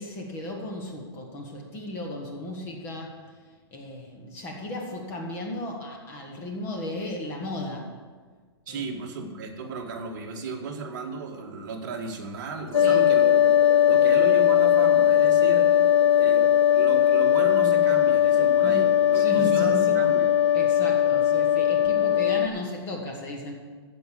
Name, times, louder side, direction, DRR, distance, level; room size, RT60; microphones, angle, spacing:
voice 1, 0.0-3.4 3.7-7.9 8.7-8.9 12.8-13.1 18.6-18.9 19.1-20.0 20.5-23.5, left 2 dB, 15° left, 2 dB, 1.3 m, -35 dB
voice 2, 8.7-13.5 13.8-15.8 16.1-20.3, right 4 dB, 45° right, 1 dB, 2.0 m, -35 dB
sound 1, 12.7-22.5, left 10 dB, 85° left, 1.2 m, -19 dB
15.5 x 5.3 x 8.3 m, 1.5 s
hypercardioid pair, 170°, 14 cm